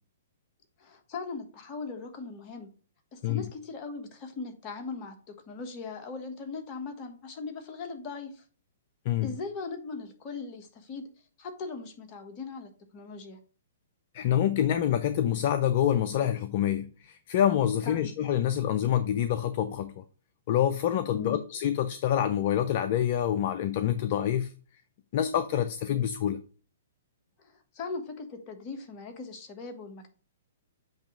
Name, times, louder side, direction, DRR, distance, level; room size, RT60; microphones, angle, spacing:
voice 1, 0.8-2.7 3.1-8.4 9.2-11.1 11.4-13.4 17.8-18.1 21.1-21.4 27.4-30.1, left 4 dB, 35° left, 1.3 m, -39 dB
voice 2, 14.1-19.9 20.5-24.5 25.1-26.4, left 10 dB, 50° left, 0.5 m, -26 dB
7.9 x 2.9 x 5.0 m
hypercardioid pair, 120°, 0 cm